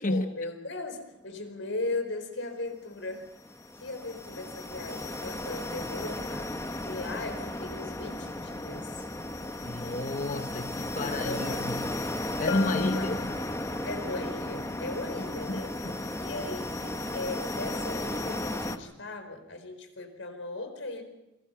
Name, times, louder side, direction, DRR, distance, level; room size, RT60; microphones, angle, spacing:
voice 1, 0.0-3.2 3.8-8.9 11.0-11.7 12.6-13.1 13.9-15.7 16.2-21.0, left 2 dB, 85° left, 7 dB, 4.8 m, -38 dB
sound 1, 3.1-18.8, left 1 dB, 15° left, 1.2 m, -35 dB
voice 2, 9.6-11.9 12.4-13.3 15.5-16.1, left 2 dB, 40° left, 7 dB, 0.9 m, -31 dB
Bell, 12.5-14.1, left 7 dB, 65° left, 1.4 m, -36 dB
28.0 x 23.0 x 5.8 m, 0.93 s
head